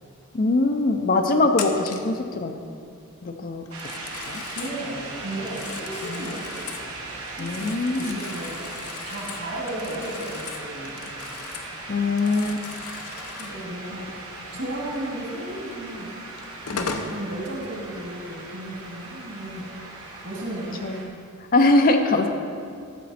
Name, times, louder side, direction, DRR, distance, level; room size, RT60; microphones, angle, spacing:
voice 1, 0.3-2.5 3.2-3.6 4.3-4.4 6.1-6.2 7.4-8.2 11.9-12.6 16.7-16.9 20.8-21.1 21.5-22.3, left 2 dB, 40° left, 5 dB, 0.5 m, -22 dB
Telephone, 1.5-2.1 3.7-4.8 5.3-6.9 7.3-11.8 12.0-13.6 15.7-15.8 16.4-17.1, left 5 dB, 90° left, 0.8 m, -37 dB
sound 1, 3.7-21.0, right 2 dB, 80° right, 1.9 m, -38 dB
voice 2, 4.4-8.7 9.0-11.0 13.4-14.1 14.5-16.1 16.7-19.6 20.2-20.8 22.0-22.3, right 1 dB, 55° right, -3 dB, 2.5 m, -34 dB
12.5 x 7.3 x 4.2 m, 2.3 s
head